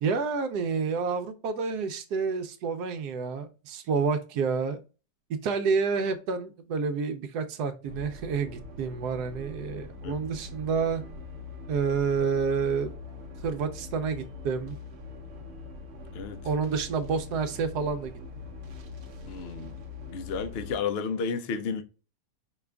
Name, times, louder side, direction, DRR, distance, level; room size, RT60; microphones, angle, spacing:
voice 1, 0.0-4.8 5.4-11.0 11.7-12.9 13.4-14.8 16.4-18.2, right 5 dB, 80° right, 1.1 m, -29 dB
sound 1, 7.8-20.8, left 3 dB, 55° right, 0.9 m, -43 dB
voice 2, 19.3-19.7 20.1-21.8, left 5 dB, 90° left, 0.5 m, -32 dB
5.0 x 2.4 x 3.3 m
omnidirectional pair, 1.7 m